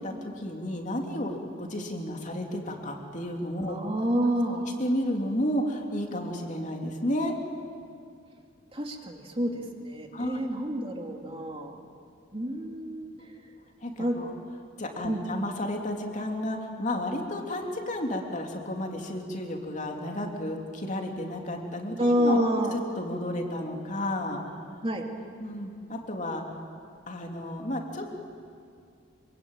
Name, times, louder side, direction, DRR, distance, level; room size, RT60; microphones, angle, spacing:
voice 1, 0.0-3.7 4.8-7.3 10.1-10.4 13.2-13.3 13.8-14.3 14.8-22.4 22.7-24.4 25.4-26.4 27.1-28.1, left 1 dB, 40° left, 1 dB, 3.0 m, -32 dB
voice 2, 3.7-4.6 8.7-11.7 12.3-13.1 14.0-14.2 15.0-15.2 22.0-22.8 24.8-25.0, equal, 30° right, 2 dB, 2.6 m, -28 dB
26.0 x 24.0 x 9.0 m, 2.3 s
head